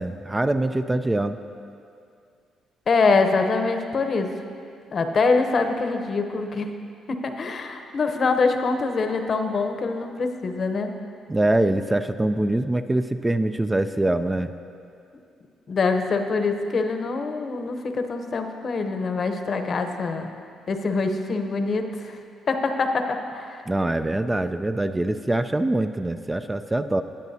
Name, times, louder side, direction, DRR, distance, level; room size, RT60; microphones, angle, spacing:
voice 1, 0.0-1.4 11.3-14.5 23.7-27.0, right 1 dB, 15° right, 9 dB, 0.3 m, -24 dB
voice 2, 2.9-4.3 4.9-6.7 7.1-10.9 15.7-20.3 20.7-22.2 22.5-23.6, left 4 dB, 50° left, 6 dB, 0.8 m, -24 dB
17.0 x 9.3 x 2.8 m, 2.4 s
cardioid pair, 90°, 0 cm